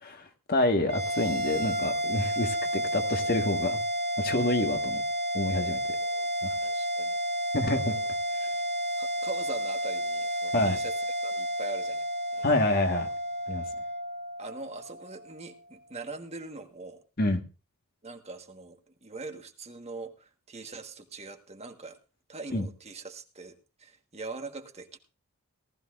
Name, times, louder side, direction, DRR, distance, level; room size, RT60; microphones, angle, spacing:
voice 1, 0.0-3.8 4.2-5.0 5.3-5.8 6.4-6.5 7.5-7.9 8.4-8.5 10.5-10.8 12.4-13.1 13.5-13.6 17.2-17.4 22.5-22.6, left 2 dB, 45° left, 5 dB, 1.7 m, -27 dB
sound 1, 0.9-15.5, equal, 50° right, 2.5 m, -31 dB
voice 2, 6.6-7.2 7.9-8.1 9.0-10.9 11.2-12.0 12.3-12.5 14.4-17.0 18.0-22.0 22.3-25.0, right 3 dB, 30° right, 5 dB, 1.5 m, -42 dB
19.0 x 14.0 x 2.5 m, 0.32 s
head